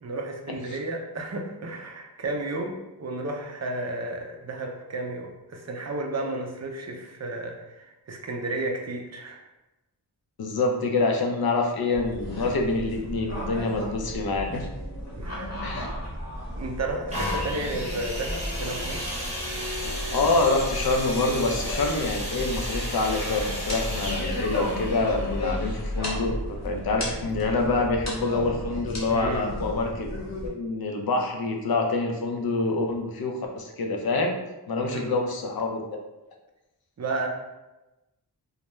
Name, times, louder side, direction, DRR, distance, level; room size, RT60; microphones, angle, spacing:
voice 1, 0.0-9.4 15.2-15.6 16.6-19.1 29.1-29.5 34.8-35.1 37.0-37.3, right 2 dB, 40° right, 2 dB, 0.4 m, -33 dB
voice 2, 10.4-14.7 15.6-15.9 20.1-30.1 30.4-34.4 34.7-35.8, left 3 dB, 60° left, 2 dB, 0.5 m, -26 dB
sound 1, 11.9-30.5, equal, 40° left, 0.8 m, -34 dB
sound 2, 17.1-26.8 27.5-27.6, equal, 15° right, 0.8 m, -34 dB
2.3 x 2.1 x 3.0 m, 1.0 s
wide cardioid pair, 60°, 42 cm